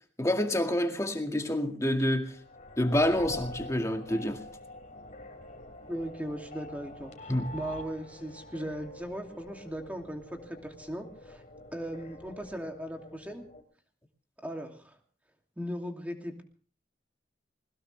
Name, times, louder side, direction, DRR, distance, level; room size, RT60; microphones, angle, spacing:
voice 1, 0.2-2.3 2.8-4.4 7.3-7.5, left 1 dB, 20° left, 2.0 m, -27 dB
sound 1, 2.3-13.6, left 2 dB, 45° left, 2.9 m, -46 dB
voice 2, 5.9-7.1 7.5-11.4 11.7-13.4 14.4-15.0 15.6-16.4, equal, 10° right, 2.7 m, -38 dB
21.5 x 20.0 x 3.4 m
head